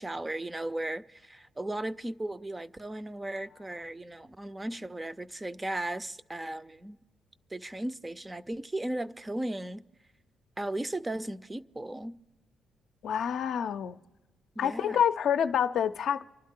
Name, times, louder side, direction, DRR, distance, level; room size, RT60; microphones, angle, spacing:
voice 1, 0.0-7.0 7.5-9.8 10.6-12.2 14.6-15.0, right 1 dB, 15° right, 0.5 m, -36 dB
voice 2, 13.0-14.0 14.6-16.3, left 8 dB, 70° left, 0.5 m, -27 dB
28.5 x 12.0 x 3.7 m
cardioid pair, 90°, 0 cm